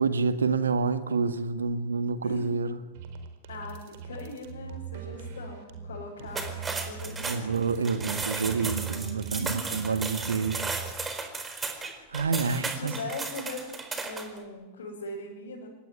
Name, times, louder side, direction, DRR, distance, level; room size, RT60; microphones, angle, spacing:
voice 1, 0.0-2.8 7.2-10.7 12.1-13.0, right 4 dB, 70° right, 1.8 m, -28 dB
sound 1, 2.9-11.0, right 6 dB, 50° right, 4.3 m, -40 dB
voice 2, 3.5-7.6 9.3-9.6 11.0-11.3 12.2-15.7, left 2 dB, 65° left, 6.8 m, -41 dB
sound 2, 6.3-14.4, right 4 dB, 15° right, 4.4 m, -35 dB
26.5 x 21.0 x 9.7 m
figure-of-eight pair, 90°, 0 cm